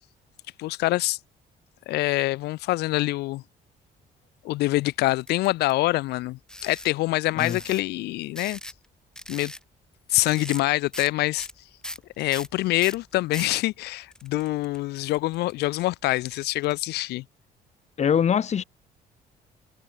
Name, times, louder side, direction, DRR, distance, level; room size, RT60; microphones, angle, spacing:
voice 1, 0.6-1.2 1.9-3.4 4.4-8.6 9.3-9.5 10.1-11.5 12.2-17.2, left 18 dB, 75° left, 0.6 m, -25 dB
sound 1, 5.3-5.7 6.5-6.9 7.4-7.8 8.4-8.9 9.2-9.6 10.3-10.7 10.9-11.1 11.4-13.6 14.1-16.7, left 1 dB, 5° left, 1.1 m, -39 dB
voice 2, 18.0-18.6, left 8 dB, 40° left, 2.0 m, -23 dB
cardioid pair, 110°, 17 cm